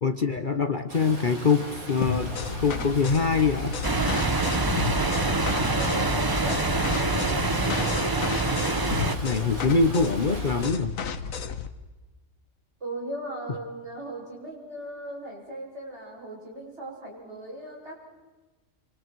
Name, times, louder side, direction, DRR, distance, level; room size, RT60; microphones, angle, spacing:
voice 1, 0.0-2.3 2.6-3.7 9.2-10.9, left 4 dB, 40° left, 8 dB, 1.0 m, -24 dB
Stream, 0.9-10.7, equal, 80° right, 4.9 m, -37 dB
sound 1, 2.0-11.7, left 6 dB, 70° left, 1.5 m, -33 dB
sound 2, 3.8-9.2, right 3 dB, 20° right, 0.8 m, -25 dB
voice 2, 5.4-7.7 12.8-18.1, right 1 dB, 50° right, -3 dB, 8.2 m, -38 dB
27.5 x 27.0 x 4.7 m, 1.2 s
omnidirectional pair, 1.5 m